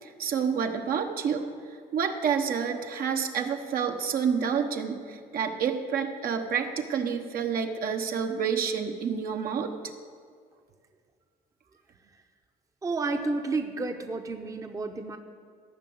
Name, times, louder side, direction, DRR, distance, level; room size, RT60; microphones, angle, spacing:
voice 1, 0.0-1.4 1.9-9.7, right 7 dB, 60° right, 4 dB, 1.1 m, -29 dB
voice 2, 12.8-15.2, right 3 dB, 20° right, 5 dB, 0.8 m, -31 dB
14.5 x 5.9 x 7.9 m, 2.1 s
cardioid pair, 110°, 17 cm